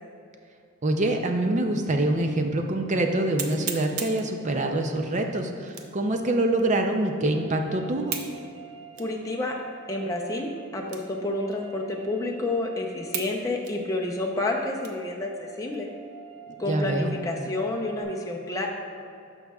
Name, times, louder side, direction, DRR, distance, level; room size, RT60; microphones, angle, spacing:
voice 1, 0.8-8.2 16.7-17.1, right 1 dB, 30° right, 4 dB, 0.5 m, -25 dB
sound 1, 2.0-2.1 2.6-2.7 3.4-4.3 5.7-6.1 6.6-6.7 8.1-8.4 8.9-9.1 9.8-9.9 10.8-11.2 11.5-11.6 12.3-12.4 13.1-13.4 13.6-15.1 15.6-15.8 16.3-16.7, right 7 dB, 75° right, 0.7 m, -36 dB
sound 2, 4.9-18.0, right 7 dB, 55° right, 1.3 m, -48 dB
voice 2, 9.0-9.6 9.9-15.9 16.6-18.7, left 2 dB, 15° left, -1 dB, 0.6 m, -29 dB
12.5 x 5.5 x 2.4 m, 2.5 s
head